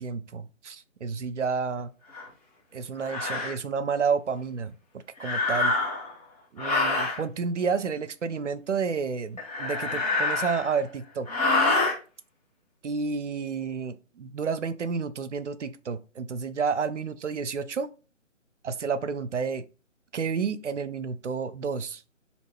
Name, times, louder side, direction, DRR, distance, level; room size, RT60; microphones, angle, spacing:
voice 1, 0.0-1.9 2.7-5.7 6.5-11.3 12.8-17.9 18.6-19.6 20.1-22.0, right 5 dB, 65° right, 0.5 m, -30 dB
sound 1, 2.1-2.3 3.0-3.5 5.2-6.1 6.6-7.2 9.4-10.8 11.3-12.0, left 3 dB, 30° left, 1.1 m, -26 dB
3.5 x 2.5 x 3.1 m
figure-of-eight pair, 150°, 39 cm